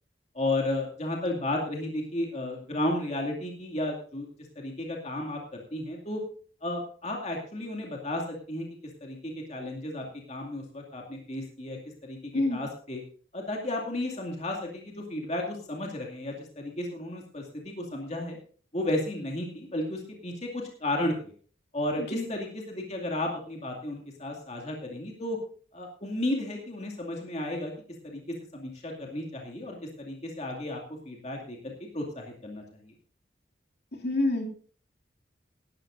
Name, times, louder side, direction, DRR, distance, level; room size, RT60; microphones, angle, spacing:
voice 1, 0.3-4.3 4.6-6.2 6.6-8.7 9.0-12.2 12.5-13.0 13.3-18.4 18.7-21.3 21.7-25.4 25.7-27.7 28.0-32.9, left 1 dB, 35° left, 0 dB, 2.4 m, -33 dB
voice 2, 34.0-34.5, left 2 dB, 60° left, 0 dB, 2.7 m, -26 dB
18.0 x 11.5 x 2.6 m, 0.43 s
head